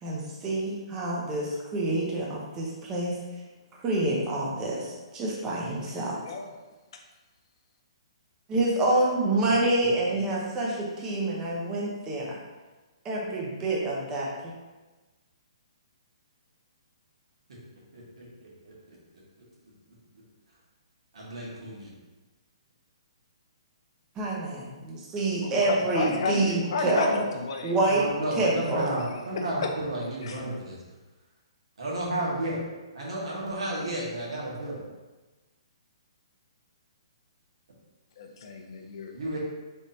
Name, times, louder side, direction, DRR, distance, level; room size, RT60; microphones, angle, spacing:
voice 1, 0.0-3.2 3.8-6.2 8.5-12.4 13.0-14.5 24.2-27.2 27.6-28.1 28.4-28.9, right 2 dB, 15° right, -3 dB, 0.7 m, -27 dB
voice 2, 5.9-6.5 6.9-7.0 25.4-27.7 29.0-29.4 30.2-30.4 38.2-39.1, left 4 dB, 55° left, 3 dB, 0.6 m, -32 dB
voice 3, 17.9-19.0 21.1-21.9 27.9-30.8 31.8-32.6 32.9-34.8 39.1-39.4, right 1 dB, 75° right, -5 dB, 1.5 m, -32 dB
4.0 x 3.5 x 2.7 m, 1.2 s
hypercardioid pair, 155°, 3 cm